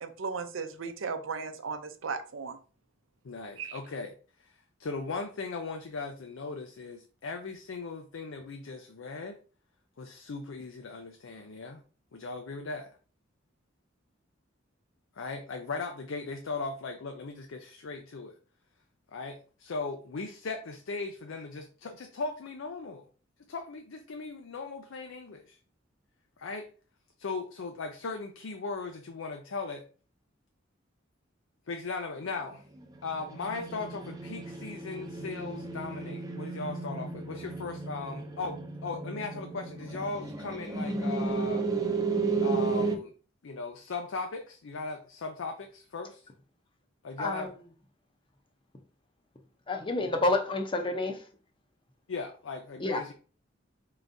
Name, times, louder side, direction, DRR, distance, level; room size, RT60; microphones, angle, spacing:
voice 1, 0.0-2.6 3.6-3.8, right 5 dB, 80° right, 0.6 m, -36 dB
voice 2, 3.2-9.4 10.0-11.8 12.1-12.9 15.2-18.4 19.1-23.0 23.5-25.6 26.4-26.7 27.2-29.8 31.7-32.7 33.0-41.7 42.4-43.1 43.4-46.3 47.0-47.5 52.1-53.1, left 4 dB, 80° left, 0.5 m, -38 dB
sound 1, 32.8-43.0, right 4 dB, 20° right, 0.6 m, -33 dB
voice 3, 49.7-51.2 52.8-53.1, left 2 dB, 25° left, 0.6 m, -29 dB
4.5 x 3.8 x 2.6 m
head